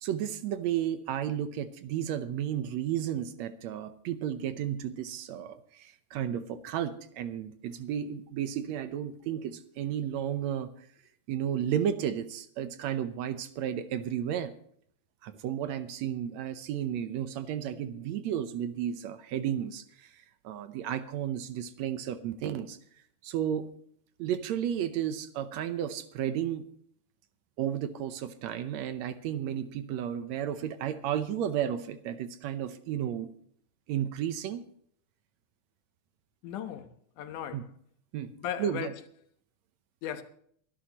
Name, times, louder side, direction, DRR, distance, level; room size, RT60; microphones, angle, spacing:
voice 1, 0.0-10.9 11.3-14.5 15.2-22.8 23.2-23.7 24.2-26.7 27.6-33.3 33.9-34.7 37.5-37.6 38.1-38.3 38.6-38.9, right 10 dB, 70° right, 2.0 m, -33 dB
voice 2, 36.4-37.6 38.4-38.9 40.0-40.2, left 10 dB, 90° left, 2.7 m, -37 dB
24.0 x 11.5 x 3.0 m
omnidirectional pair, 3.5 m